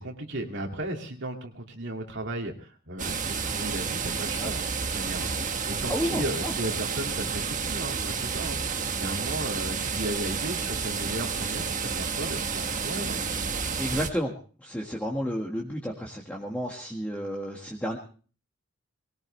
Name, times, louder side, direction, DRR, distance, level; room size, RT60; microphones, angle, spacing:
voice 1, 0.0-13.2, right 1 dB, 55° right, 2 dB, 2.5 m, -35 dB
sound 1, 3.0-14.1, right 5 dB, 35° right, 1.4 m, -30 dB
voice 2, 5.9-6.5 13.8-14.3 14.6-18.0, equal, 5° left, -1 dB, 1.7 m, -31 dB
21.0 x 18.5 x 3.3 m, 0.40 s
head